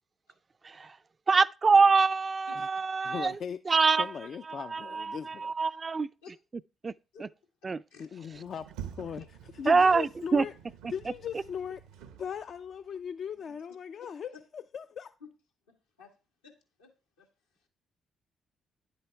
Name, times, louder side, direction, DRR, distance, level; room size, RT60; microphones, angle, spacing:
voice 1, 1.3-3.3 3.7-4.0 4.7-6.1 6.8-6.9 7.6-7.8 9.7-10.4, right 4 dB, 40° right, 0.4 m, -24 dB
voice 2, 3.0-5.5 8.0-8.7 8.9-10.5 10.9-11.8 12.1-15.1, left 7 dB, 55° left, 0.4 m, -39 dB
voice 3, 4.0-4.3 6.2-6.3 7.1-7.3 7.9-8.1 9.2-9.3 13.4-13.5 15.7-16.2 16.4-17.7, left 5 dB, 90° left, 1.9 m, -54 dB
Sliding door, 8.3-12.8, right 9 dB, 80° right, 0.8 m, -47 dB
10.0 x 8.0 x 3.4 m
hypercardioid pair, 45°, 0 cm